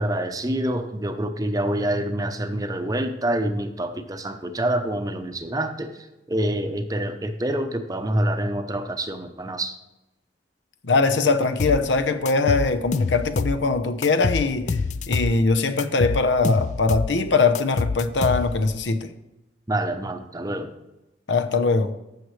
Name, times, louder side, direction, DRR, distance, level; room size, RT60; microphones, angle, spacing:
voice 1, 0.0-9.8 19.7-20.7, right 1 dB, 20° right, 0.6 m, -26 dB
voice 2, 10.8-14.8 15.1-19.1 21.3-21.9, left 3 dB, 85° left, 0.8 m, -21 dB
sound 1, 11.6-11.8 12.3-13.6 14.0-15.4 15.8-17.1 17.5-18.7, left 4 dB, 40° left, 0.3 m, -26 dB
14.5 x 6.6 x 3.2 m
head